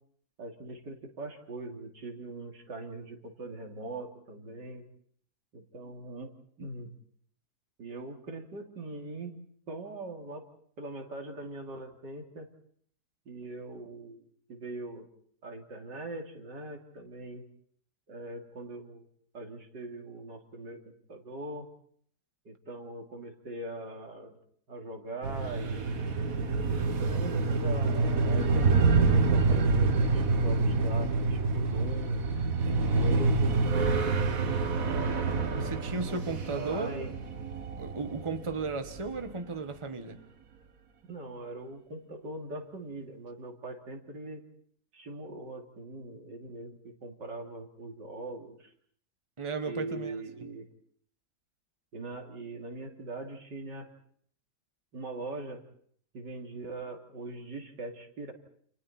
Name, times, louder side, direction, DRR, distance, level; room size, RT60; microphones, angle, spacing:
voice 1, 0.4-4.8 5.5-6.3 6.6-6.9 7.8-9.3 9.7-10.4 10.8-12.5 13.3-14.2 14.5-15.1 15.4-17.5 18.1-19.0 19.3-21.7 22.5-24.4 24.7-26.1 27.0-32.3 33.0-34.2 34.8-35.7 36.0-36.2 36.6-37.1 41.1-44.4 44.9-48.7 49.6-50.7 51.9-53.9 54.9-55.6 56.1-58.3, right 2 dB, 85° right, 2 dB, 3.5 m, -41 dB
sound 1, 25.2-39.3, right 3 dB, 55° right, 1.8 m, -27 dB
voice 2, 32.6-33.1 35.5-37.0 37.8-40.2 49.4-50.5, right 4 dB, 20° right, 6 dB, 1.5 m, -35 dB
30.0 x 28.0 x 4.4 m, 0.63 s
omnidirectional pair, 1.8 m